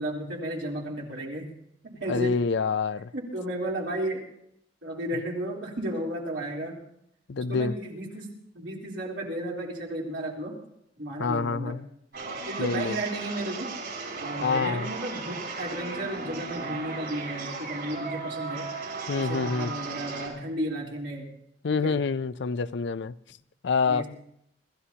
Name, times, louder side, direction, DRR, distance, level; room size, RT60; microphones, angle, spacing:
voice 1, 0.0-1.5 1.8-2.4 3.1-4.2 4.8-6.8 7.5-8.3 8.6-10.5 11.0-11.8 12.5-13.7 14.2-18.7 19.2-21.3 21.7-22.0 23.9-24.1, right 1 dB, 85° right, 3.6 m, -33 dB
voice 2, 2.1-3.1 7.3-7.7 11.2-11.8 12.6-13.0 14.4-14.9 19.1-19.7 21.6-23.1 23.6-24.0, left 4 dB, 70° left, 0.5 m, -27 dB
sound 1, 12.1-20.3, right 4 dB, 65° right, 5.6 m, -36 dB
27.0 x 14.0 x 2.9 m
head